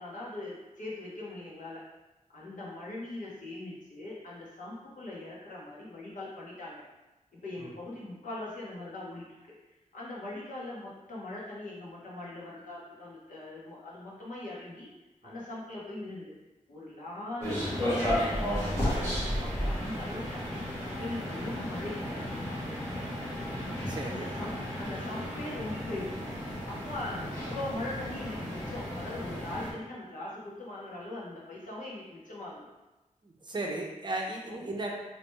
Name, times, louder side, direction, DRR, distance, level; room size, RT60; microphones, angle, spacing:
voice 1, 0.0-1.8 2.3-6.8 7.3-9.5 9.9-14.9 15.2-16.3 16.7-20.6 21.0-22.4 24.0-26.2 26.7-32.6 34.5-34.6, left 2 dB, 80° left, -5 dB, 1.1 m, -41 dB
sound 1, 17.4-29.7, equal, 20° left, 1.3 m, -33 dB
voice 2, 23.9-24.3 26.5-26.6 33.2-34.9, right 2 dB, 35° right, 0 dB, 0.6 m, -36 dB
3.2 x 3.0 x 3.2 m, 1.1 s
wide cardioid pair, 130°, 13 cm